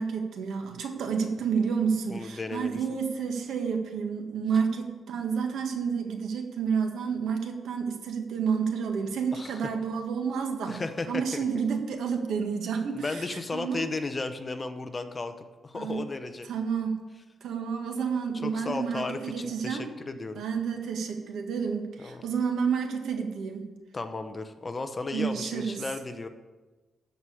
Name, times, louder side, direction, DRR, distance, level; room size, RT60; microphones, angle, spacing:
voice 1, 0.0-10.8 11.1-13.9 15.7-16.0 16.4-17.0 17.4-19.8 20.3-23.7 25.1-25.8, right 6 dB, 85° right, 4 dB, 1.5 m, -30 dB
voice 2, 2.1-2.8 9.3-9.6 10.7-11.4 12.9-15.3 15.6-16.5 18.4-20.4 22.0-22.2 23.9-26.3, left 3 dB, 25° left, 8 dB, 0.8 m, -34 dB
13.5 x 4.8 x 8.6 m, 1.2 s
wide cardioid pair, 140°, 0 cm